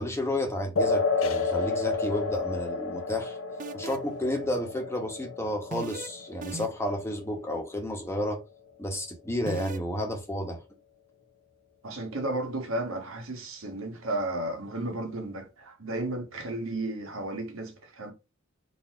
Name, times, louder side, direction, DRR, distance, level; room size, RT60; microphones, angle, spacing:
voice 1, 0.0-3.4 3.7-8.4 8.8-10.6, left 1 dB, 15° left, 1.0 m, -31 dB
sound 1, 0.8-7.8, left 3 dB, 75° left, 0.5 m, -31 dB
sound 2, 3.6-4.2 5.7-6.1 6.4-6.9 9.5-9.8, right 4 dB, 40° right, 0.5 m, -38 dB
voice 2, 11.8-18.1, right 2 dB, 90° right, 1.3 m, -33 dB
4.1 x 2.8 x 4.5 m
head